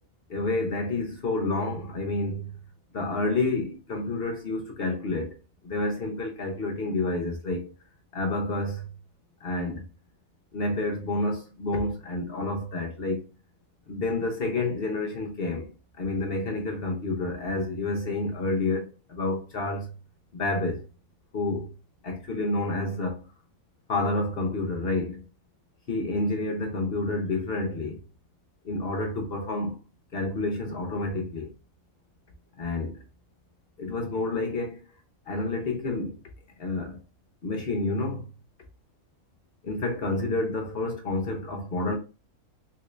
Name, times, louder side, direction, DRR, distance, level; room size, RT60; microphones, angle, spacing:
voice 1, 0.3-2.5 2.9-5.4 5.6-7.7 8.1-8.9 9.4-9.9 10.5-13.3 13.9-19.9 20.3-20.8 21.3-21.7 22.0-23.2 23.9-25.2 25.9-28.0 28.6-29.8 30.1-31.5 32.6-33.0 33.8-34.8 35.3-36.2 36.6-37.0 37.4-38.3 39.6-42.0, left 2 dB, 55° left, 0.7 m, -29 dB
3.7 x 3.2 x 2.4 m
omnidirectional pair, 1.6 m